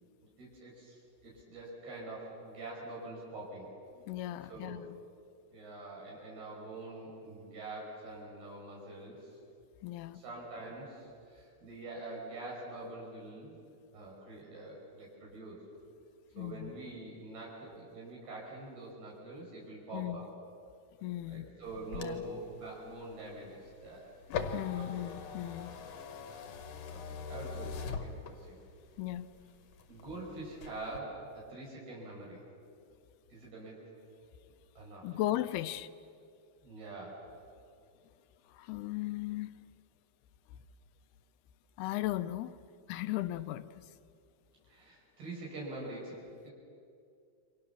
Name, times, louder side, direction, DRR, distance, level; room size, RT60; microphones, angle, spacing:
voice 1, 0.4-3.7 4.5-4.8 5.5-9.3 10.1-13.6 13.9-15.6 16.4-20.3 21.3-24.1 24.7-25.2 26.9-28.6 29.9-32.4 33.3-33.8 34.8-35.1 36.6-37.2 44.7-46.5, right 2 dB, 75° right, -3 dB, 7.5 m, -45 dB
voice 2, 4.1-4.9 9.8-10.2 16.4-16.7 19.9-20.3 21.0-21.5 22.0-22.2 24.5-25.8 29.0-29.3 35.0-35.9 38.5-39.5 41.8-42.5 42.9-43.8, left 15 dB, 90° left, 13 dB, 2.8 m, -36 dB
sound 1, 21.6-28.7 29.2-30.2 30.5-31.0, left 5 dB, 55° left, 2.0 m, -42 dB
29.0 x 25.0 x 7.0 m, 2.4 s
omnidirectional pair, 4.4 m